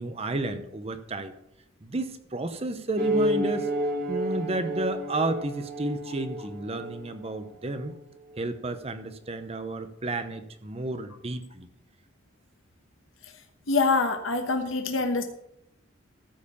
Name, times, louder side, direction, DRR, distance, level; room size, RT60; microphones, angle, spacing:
voice 1, 0.0-1.3 1.8-3.7 4.1-7.9 8.3-11.7, right 2 dB, 30° right, 9 dB, 0.8 m, -32 dB
sound 1, 3.0-7.9, equal, 45° right, 1.5 m, -30 dB
voice 2, 13.7-15.2, left 3 dB, 90° left, 5 dB, 1.1 m, -25 dB
14.0 x 4.8 x 7.0 m, 0.77 s
head